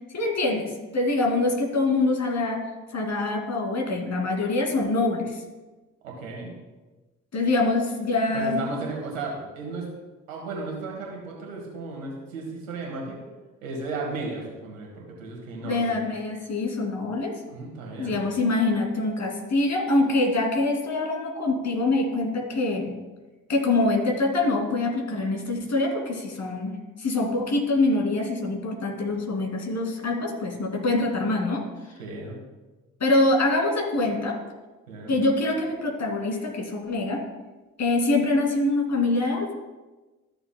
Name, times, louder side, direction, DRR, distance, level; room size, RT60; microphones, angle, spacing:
voice 1, 0.1-2.6 2.9-5.4 7.3-8.6 15.6-17.3 18.0-22.9 23.5-26.7 27.0-31.6 33.0-34.4 35.1-37.2 37.8-39.5, left 2 dB, 45° left, 1 dB, 2.5 m, -24 dB
voice 2, 6.0-6.5 8.3-9.9 10.3-13.2 13.6-15.9 17.5-18.2 32.0-32.4 34.9-35.2, right 3 dB, 85° right, 0 dB, 1.9 m, -34 dB
13.5 x 6.8 x 2.2 m, 1.2 s
hypercardioid pair, 45°, 38 cm